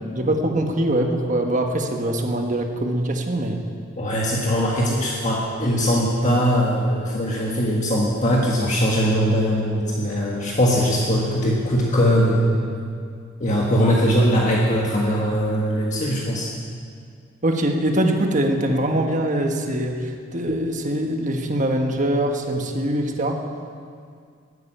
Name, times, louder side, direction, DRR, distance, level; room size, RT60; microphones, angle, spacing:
voice 1, 0.2-3.6 17.4-23.4, right 1 dB, 40° right, 3 dB, 1.4 m, -23 dB
voice 2, 4.0-12.6 13.4-16.5, equal, 40° left, -3 dB, 1.5 m, -21 dB
13.5 x 9.2 x 8.9 m, 2.2 s
head